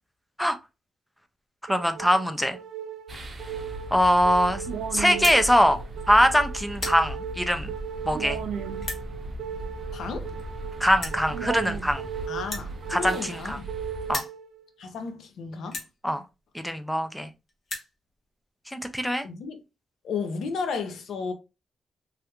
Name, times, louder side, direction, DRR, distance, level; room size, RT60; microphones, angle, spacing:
voice 1, 1.7-2.6 3.9-4.6 4.9-5.8 6.1-7.7 8.0-8.4 10.8-12.0 12.9-13.6 14.1-14.2 16.0-16.2 16.5-17.3 18.7-19.2, equal, ahead, 0.3 m, -22 dB
sound 1, 1.7-14.7, right 8 dB, 85° right, 0.4 m, -37 dB
sound 2, 3.1-14.1, right 1 dB, 30° right, 0.7 m, -38 dB
sound 3, 5.2-5.4 6.1-6.3 6.6-7.0 7.8-7.9 8.8-9.0 10.1-10.2 10.4-10.5 11.0-11.2 12.4-13.7 14.0-14.4 15.1-15.2 15.7-15.9 16.8-16.9 17.1-17.2 17.5-17.9, left 2 dB, 40° left, 0.9 m, -35 dB
voice 2, 9.9-10.3 12.3-13.7 14.8-15.8 19.2-19.6 20.0-21.3, left 5 dB, 70° left, 0.6 m, -33 dB
3.3 x 2.4 x 2.8 m
wide cardioid pair, 180°, 0 cm